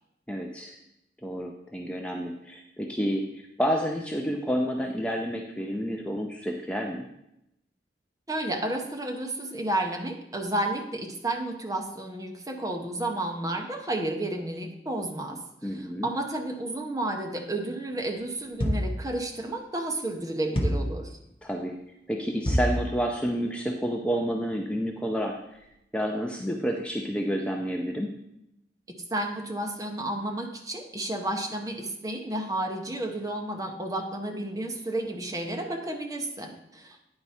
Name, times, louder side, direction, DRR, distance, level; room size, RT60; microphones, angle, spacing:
voice 1, 0.3-0.8 1.2-7.0 15.6-16.1 21.4-21.7 22.1-25.6 25.9-28.1, equal, 5° left, 1 dB, 0.5 m, -30 dB
voice 2, 8.3-21.2 29.1-37.0, right 1 dB, 20° right, 3 dB, 0.8 m, -32 dB
sound 1, 18.6-19.0 20.6-21.0 22.5-22.8, equal, 30° left, 0.9 m, -25 dB
9.5 x 4.5 x 4.2 m, 0.81 s
head